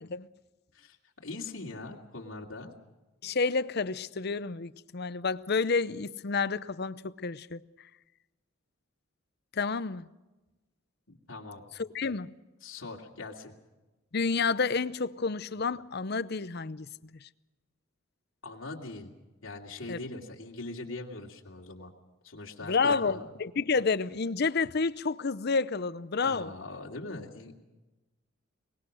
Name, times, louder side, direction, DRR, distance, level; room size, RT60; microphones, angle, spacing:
voice 1, 1.2-2.7 11.1-11.6 12.6-13.5 18.4-19.1 19.4-21.9 22.2-23.2 26.2-27.5, left 2 dB, 80° left, 2.6 m, -41 dB
voice 2, 3.2-7.6 9.5-10.1 11.8-12.3 14.1-16.9 19.9-20.0 22.6-26.5, left 4 dB, 50° left, 0.7 m, -29 dB
23.5 x 20.5 x 6.4 m
head